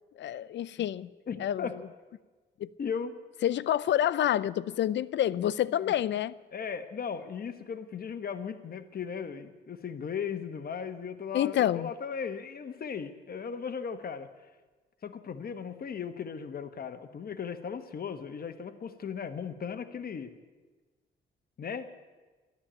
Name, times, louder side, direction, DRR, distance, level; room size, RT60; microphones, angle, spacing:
voice 1, 0.2-1.1 1.4-1.7 2.6-2.7 3.4-6.3 11.3-11.9, left 11 dB, 65° left, 0.5 m, -28 dB
voice 2, 1.3-1.7 2.8-3.1 5.8-5.9 6.5-14.3 15.0-20.3 21.6-21.9, left 6 dB, 50° left, 1.3 m, -37 dB
13.5 x 11.5 x 8.9 m
cardioid pair, 90°, 20 cm